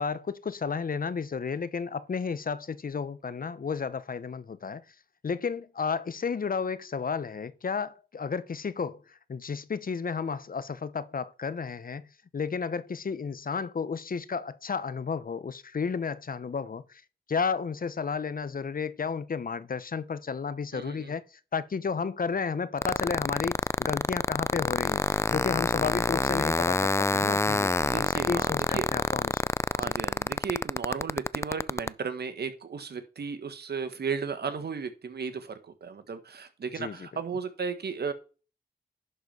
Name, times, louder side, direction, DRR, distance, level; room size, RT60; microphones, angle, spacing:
voice 1, 0.0-4.8 5.2-12.1 12.3-17.0 17.3-29.4 29.8-29.9 36.8-37.1, left 5 dB, 55° left, 0.9 m, -32 dB
voice 2, 20.7-21.1 27.8-28.9 29.7-38.1, right 5 dB, 70° right, 1.5 m, -35 dB
sound 1, 22.8-31.9, left 2 dB, 15° left, 0.4 m, -26 dB
11.0 x 4.5 x 5.4 m
cardioid pair, 45°, 17 cm